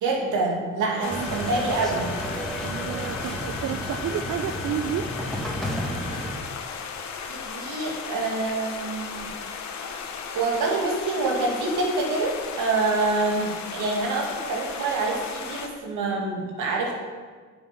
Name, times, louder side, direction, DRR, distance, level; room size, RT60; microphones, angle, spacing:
voice 1, 0.0-2.1 7.3-9.3 9.9-10.1 10.3-16.9, right 3 dB, 80° right, -1 dB, 2.3 m, -26 dB
sound 1, 1.0-15.7, left 6 dB, 65° left, 1.1 m, -35 dB
sound 2, 1.1-6.4, equal, ahead, 1.8 m, -32 dB
voice 2, 2.6-5.1, right 9 dB, 60° right, 9 dB, 0.5 m, -31 dB
9.2 x 7.2 x 5.7 m, 1.5 s
cardioid pair, 90°, 30 cm